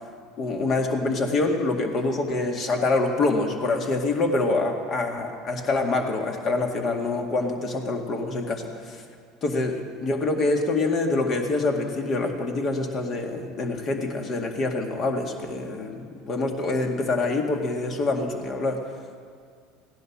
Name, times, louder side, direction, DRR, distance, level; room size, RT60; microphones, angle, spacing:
voice 1, 0.4-9.0 9.4-18.8, left 3 dB, 45° left, 3 dB, 2.1 m, -26 dB
16.0 x 10.5 x 6.1 m, 2.2 s
supercardioid pair, 95°, 0 cm